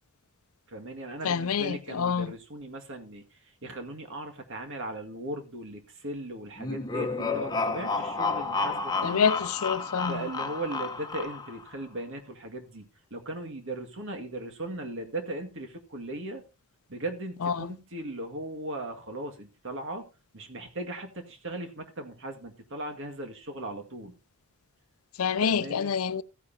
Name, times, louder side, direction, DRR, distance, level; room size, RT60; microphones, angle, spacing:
voice 1, 0.7-9.3 10.0-16.4 16.9-20.1 20.3-24.1 25.4-25.9, right 1 dB, 60° right, 2.0 m, -38 dB
voice 2, 1.2-2.3 9.0-10.3 17.4-17.7 25.2-26.2, left 6 dB, 75° left, 0.5 m, -27 dB
sound 1, 6.6-11.7, left 4 dB, 20° left, 1.0 m, -31 dB
15.5 x 9.7 x 2.8 m
head